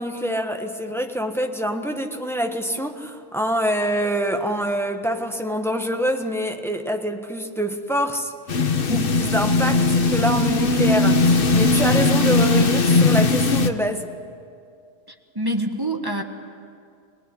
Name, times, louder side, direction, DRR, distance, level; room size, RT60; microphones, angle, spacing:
voice 1, 0.0-14.1, equal, ahead, 4 dB, 1.4 m, -26 dB
sound 1, 8.5-13.7, left 3 dB, 50° left, 1.2 m, -18 dB
voice 2, 15.3-16.2, right 1 dB, 20° right, 4 dB, 1.6 m, -25 dB
26.0 x 19.0 x 9.9 m, 2.3 s
omnidirectional pair, 1.3 m